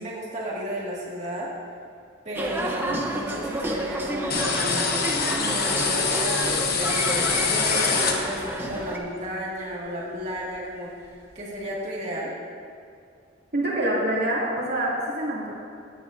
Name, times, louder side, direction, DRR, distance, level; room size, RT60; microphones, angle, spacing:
voice 1, 0.0-1.5 2.2-12.3, equal, 35° right, -6 dB, 1.9 m, -33 dB
sound 1, 2.3-9.0, right 1 dB, 10° right, 0.8 m, -30 dB
sound 2, 4.3-8.6, left 5 dB, 55° left, 0.9 m, -25 dB
voice 2, 13.5-15.6, right 1 dB, 55° right, -5 dB, 2.5 m, -26 dB
16.0 x 9.7 x 2.6 m, 2.4 s
head